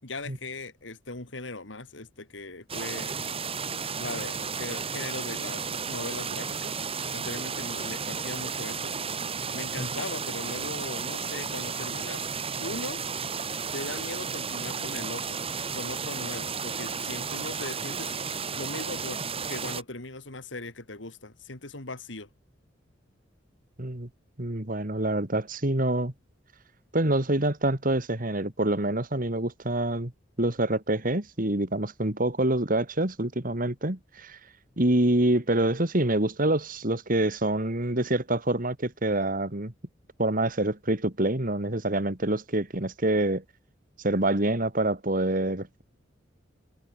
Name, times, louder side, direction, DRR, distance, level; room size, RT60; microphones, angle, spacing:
voice 1, 0.0-3.2 4.0-8.9 9.5-12.3 12.6-13.0 13.7-15.4 15.7-18.1 18.6-22.3, left 2 dB, 80° left, 3.2 m, -39 dB
sound 1, 2.7-19.8, right 5 dB, 30° right, 2.6 m, -33 dB
voice 2, 23.8-24.1 24.4-26.1 26.9-30.1 30.4-34.4 34.8-39.7 40.2-43.4 44.0-45.8, right 1 dB, 45° right, 2.9 m, -26 dB
head